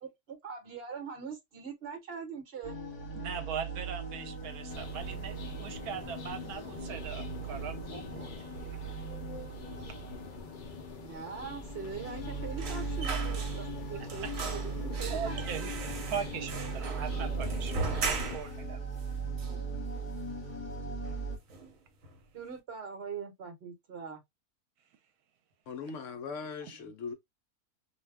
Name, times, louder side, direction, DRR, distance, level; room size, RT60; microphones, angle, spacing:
voice 1, 0.0-2.8 11.0-15.4 16.4-16.5 19.4-19.7 22.3-24.2, right 6 dB, 45° right, 1.1 m, -42 dB
sound 1, 2.6-21.4, right 4 dB, 30° left, 1.2 m, -38 dB
voice 2, 3.1-8.3 14.0-14.3 15.1-18.8 24.8-24.9, right 7 dB, 80° right, 1.1 m, -40 dB
sound 2, 4.7-18.4, left 5 dB, 85° left, 0.4 m, -45 dB
sound 3, 12.6-13.8 14.1-18.6 19.0-19.1 19.4-20.2 20.5-20.7 21.0-21.7 22.0-22.2, right 4 dB, 65° right, 1.2 m, -38 dB
voice 3, 25.7-27.1, left 5 dB, 70° left, 0.8 m, -39 dB
2.6 x 2.2 x 3.3 m
omnidirectional pair, 1.6 m